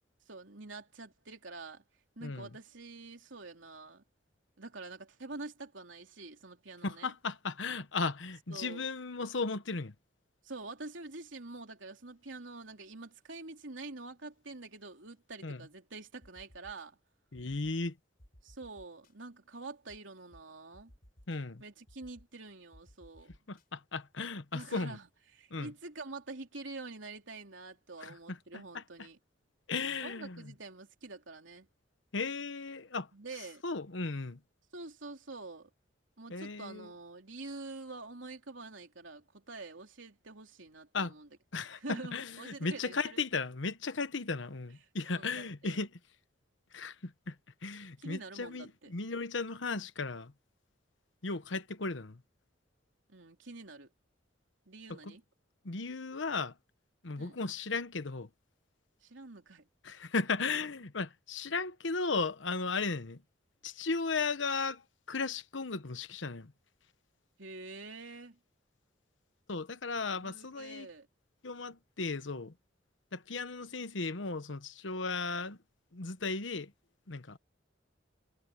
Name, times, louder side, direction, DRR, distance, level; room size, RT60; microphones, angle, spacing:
voice 1, 0.3-1.8 2.2-4.0 4.6-7.1 8.5-8.8 10.4-17.0 18.4-20.9 21.6-23.3 24.5-29.2 30.0-31.7 33.1-33.6 34.7-35.7 36.2-41.3 41.7-43.2 45.1-45.8 48.0-49.0 53.1-53.9 54.7-55.2 57.2-57.4 59.0-59.7 67.4-68.4 70.2-71.1, right 3 dB, 80° right, 3.2 m, -46 dB
voice 2, 6.8-9.9 15.4-15.6 17.3-17.9 21.3-21.6 23.5-25.0 25.5-25.7 28.0-28.1 28.7-28.8 29.7-30.4 32.1-33.1 33.6-34.4 36.3-36.9 40.9-41.1 41.5-45.9 46.7-47.3 47.6-50.3 51.2-52.2 55.6-56.5 57.0-58.3 59.8-63.2 63.6-64.8 65.1-66.5 69.5-70.9 71.4-72.5 73.1-75.6 75.9-76.7 77.1-77.4, left 4 dB, 75° left, 1.1 m, -35 dB
sound 1, 16.2-16.9 17.3-17.7 18.2-19.1 19.9-20.0 20.3-20.4 20.7-21.4 21.9-22.3 22.7-23.6, equal, 50° left, 4.8 m, -58 dB
head